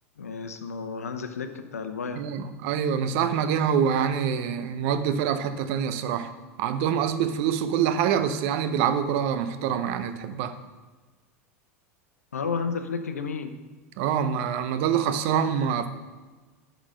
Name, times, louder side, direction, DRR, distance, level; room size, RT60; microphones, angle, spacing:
voice 1, 0.2-2.2 12.3-13.5, left 5 dB, 80° left, 8 dB, 0.8 m, -32 dB
voice 2, 2.2-6.3 6.6-10.6 14.0-15.9, right 8 dB, 55° right, 11 dB, 0.7 m, -25 dB
11.0 x 4.1 x 6.4 m, 1.3 s
figure-of-eight pair, 85°, 8 cm